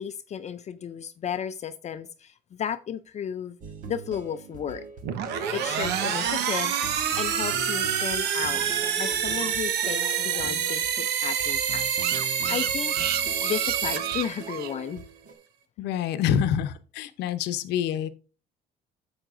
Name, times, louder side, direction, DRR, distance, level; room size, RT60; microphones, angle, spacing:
voice 1, 0.0-3.6 3.8-4.8 5.5-6.7 7.2-13.0 13.4-15.0, left 8 dB, 40° left, 0.5 m, -34 dB
sound 1, 3.6-15.3, right 4 dB, 50° right, 1.7 m, -42 dB
sound 2, 5.0-14.7, right 8 dB, 90° right, 1.1 m, -27 dB
sound 3, 7.9-10.4 10.7-10.8 11.1-11.2 11.4-14.7, right 13 dB, 65° right, 0.5 m, -34 dB
voice 2, 15.8-18.1, left 9 dB, 85° left, 0.8 m, -26 dB
8.9 x 7.8 x 2.6 m
cardioid pair, 110°, 17 cm